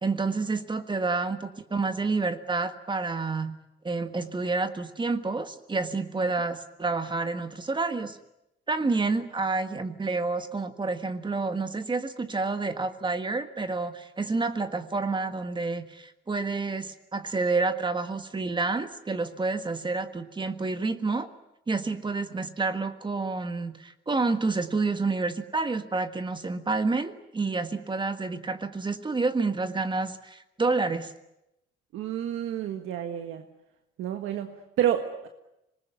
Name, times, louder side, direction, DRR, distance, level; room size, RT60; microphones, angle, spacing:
voice 1, 0.0-3.5 3.8-8.2 8.7-21.3 21.7-31.1, right 3 dB, 25° right, 9 dB, 1.6 m, -29 dB
voice 2, 31.9-33.4 34.0-35.3, right 10 dB, 90° right, 5 dB, 1.7 m, -29 dB
26.0 x 20.0 x 9.4 m, 0.88 s
cardioid pair, 110°, 20 cm